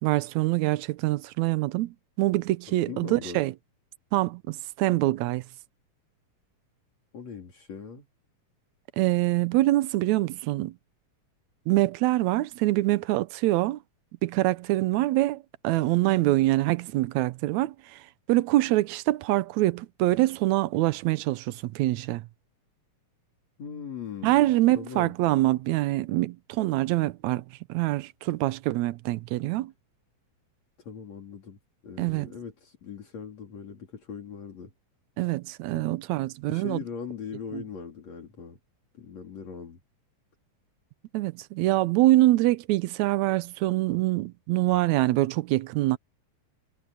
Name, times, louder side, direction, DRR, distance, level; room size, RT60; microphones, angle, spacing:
voice 1, 0.0-3.5 4.1-5.4 9.0-10.7 11.7-13.8 14.2-22.3 24.2-29.7 32.0-32.3 35.2-36.8 37.5-37.6 41.1-46.0, right 17 dB, 80° right, 2.0 m, -25 dB
voice 2, 2.9-3.4 7.1-8.1 23.6-25.1 30.8-34.7 35.7-35.9 36.5-38.6 39.0-39.8, left 6 dB, 65° left, 4.8 m, -40 dB
omnidirectional pair, 3.3 m